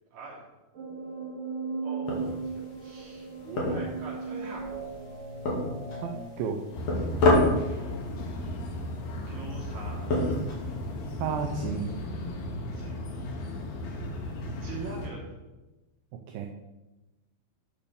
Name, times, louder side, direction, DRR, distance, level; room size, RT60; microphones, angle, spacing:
voice 1, 0.1-0.4 1.8-4.6 7.7-8.0 9.3-10.1 12.7-13.1 14.6-15.3, right 3 dB, 60° right, -4 dB, 4.5 m, -42 dB
sound 1, 0.7-6.2, right 4 dB, 40° right, 2.5 m, -37 dB
sound 2, 2.1-11.4, left 2 dB, 50° left, 3.2 m, -31 dB
voice 2, 6.0-6.6 11.2-12.0 16.1-16.5, right 6 dB, 75° right, 3 dB, 2.5 m, -32 dB
sound 3, 6.7-15.1, left 1 dB, 85° left, 3.7 m, -35 dB
11.0 x 5.3 x 6.9 m, 1.1 s
omnidirectional pair, 4.4 m